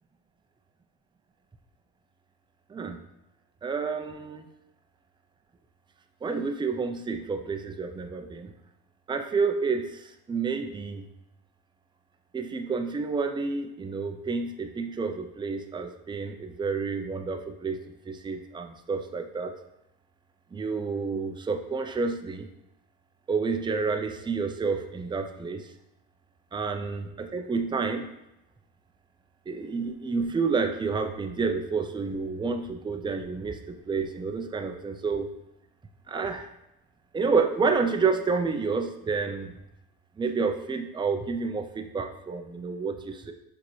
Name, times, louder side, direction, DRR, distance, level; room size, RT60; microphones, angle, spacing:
voice 1, 3.6-4.5 6.2-8.5 9.1-11.1 12.3-17.8 18.1-19.5 20.5-22.5 23.3-25.7 26.5-28.1 29.5-35.3 36.1-36.5 37.1-39.5 40.2-43.3, right 4 dB, 10° right, 6 dB, 0.4 m, -29 dB
5.8 x 2.9 x 3.1 m, 0.86 s
supercardioid pair, 70°, 42 cm